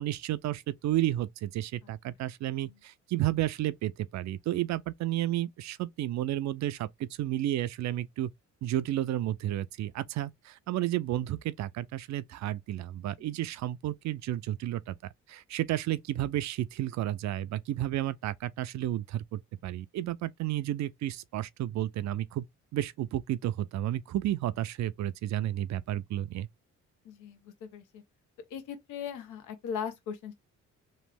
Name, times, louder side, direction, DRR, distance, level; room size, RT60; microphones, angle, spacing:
voice 1, 0.0-8.3 8.6-14.9 15.3-22.5 22.7-26.5, right 13 dB, 65° right, 0.5 m, -32 dB
voice 2, 27.0-28.0 28.5-30.3, left 7 dB, 85° left, 0.9 m, -39 dB
3.1 x 2.5 x 3.3 m
cardioid pair, 90°, 30 cm